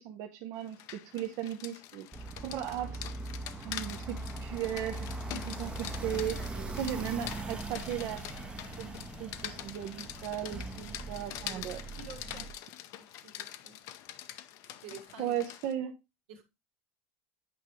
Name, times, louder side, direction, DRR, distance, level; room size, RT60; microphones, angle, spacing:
voice 1, 0.0-2.1 2.4-3.0 3.6-6.4 6.8-8.3 8.8-11.8 15.2-15.9, right 10 dB, 55° right, 0.7 m, -37 dB
Rain, 0.6-15.7, left 12 dB, 55° left, 0.6 m, -45 dB
sound 1, 2.1-12.5, right 2 dB, 15° right, 0.7 m, -41 dB
voice 2, 6.4-6.8 10.9-11.0 11.4-11.7 12.0-12.6 13.0-13.8 14.6-15.3 16.3-16.4, right 5 dB, 80° right, 1.7 m, -50 dB
8.6 x 4.9 x 3.1 m
supercardioid pair, 115°, 7 cm